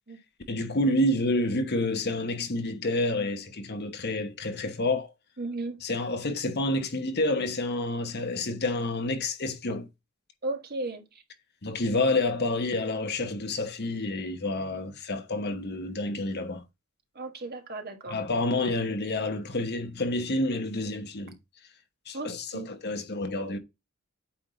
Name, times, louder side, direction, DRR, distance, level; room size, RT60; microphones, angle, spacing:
voice 1, 0.5-5.1 5.8-9.9 11.6-16.6 18.1-21.3 22.1-23.6, left 2 dB, 50° left, 1.1 m, -29 dB
voice 2, 5.4-5.8 10.4-11.0 17.1-18.2 22.1-22.7, right 2 dB, 45° right, 1.5 m, -35 dB
8.6 x 3.6 x 3.9 m
head